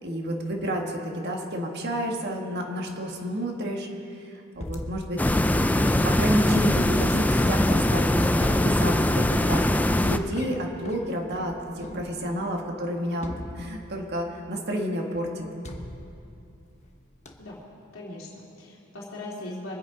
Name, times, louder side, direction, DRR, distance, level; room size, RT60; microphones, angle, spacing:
voice 1, 0.0-3.9 4.6-5.2 5.8-9.6 10.0-15.4, equal, 55° right, 1 dB, 1.7 m, -30 dB
sound 1, 4.5-12.5 13.2-14.2 15.6-16.9 17.2-17.6, left 1 dB, 35° left, 1.1 m, -39 dB
sound 2, 5.2-10.2, left 1 dB, 10° left, 0.4 m, -22 dB
voice 2, 11.8-12.5 17.4-17.6 17.9-19.8, left 1 dB, 85° left, -6 dB, 2.7 m, -40 dB
24.0 x 8.4 x 5.1 m, 2.7 s
head